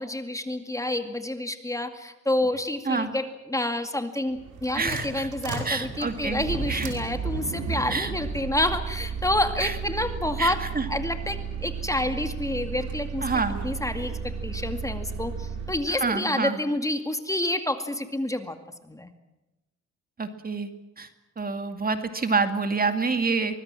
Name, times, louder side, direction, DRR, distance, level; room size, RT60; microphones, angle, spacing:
voice 1, 0.0-10.6 10.9-13.2 13.6-18.6 18.8-19.1, left 1 dB, 10° left, 7 dB, 2.2 m, -28 dB
sound 1, 4.3-15.9, right 5 dB, 75° right, 5.3 m, -33 dB
voice 2, 4.7-5.3 5.6-6.9 7.9-8.1 9.6-9.8 10.4-10.9 11.9-12.0 13.2-13.6 15.9-16.6 20.2-20.7 21.0-21.1 21.4-23.6, right 4 dB, 30° right, 8 dB, 2.2 m, -27 dB
24.0 x 20.5 x 7.6 m, 1.0 s
cardioid pair, 90°, 30 cm